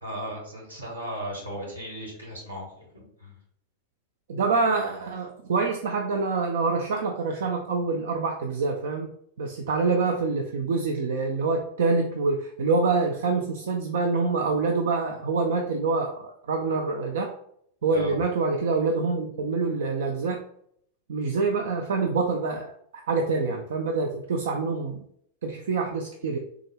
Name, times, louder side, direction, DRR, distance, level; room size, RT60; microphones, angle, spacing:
voice 1, 0.0-3.4 17.9-18.2, equal, 80° right, -2 dB, 1.4 m, -36 dB
voice 2, 4.3-9.1 9.4-17.3 17.8-20.4 21.1-25.0 25.4-26.4, right 4 dB, 60° right, 2 dB, 0.4 m, -26 dB
3.5 x 2.1 x 3.2 m, 0.67 s
figure-of-eight pair, 90°, 0 cm